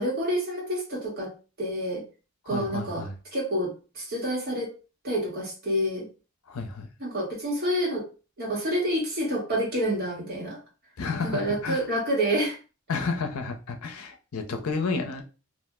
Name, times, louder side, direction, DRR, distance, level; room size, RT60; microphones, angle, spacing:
voice 1, 0.0-1.3 1.6-2.0 2.4-3.0 3.3-4.7 5.0-6.0 7.0-8.0 8.4-10.6 11.2-12.6, equal, 45° right, -3 dB, 1.2 m, -28 dB
voice 2, 2.5-3.1 6.5-6.9 11.0-11.8 12.9-15.2, left 4 dB, 75° left, 5 dB, 0.6 m, -31 dB
2.4 x 2.1 x 3.5 m, 0.33 s
head